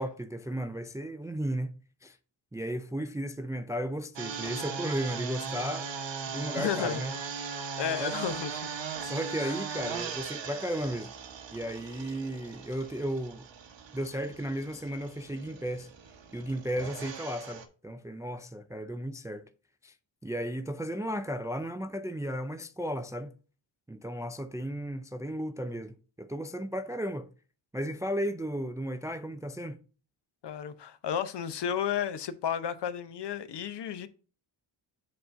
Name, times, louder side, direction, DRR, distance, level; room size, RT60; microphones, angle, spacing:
voice 1, 0.0-2.2 2.5-5.9 6.3-7.1 8.0-8.2 9.0-11.1 11.5-13.5 13.9-15.9 16.3-19.5 19.8-19.9 20.2-23.3 23.9-27.3 27.7-29.8, equal, 5° right, 0.3 m, -34 dB
sound 1, 4.2-17.7, right 6 dB, 65° right, 1.1 m, -39 dB
voice 2, 6.6-7.0 7.8-8.5 9.4-9.5 30.4-34.1, left 8 dB, 60° left, 0.8 m, -32 dB
7.5 x 2.6 x 5.6 m
cardioid pair, 65°, 48 cm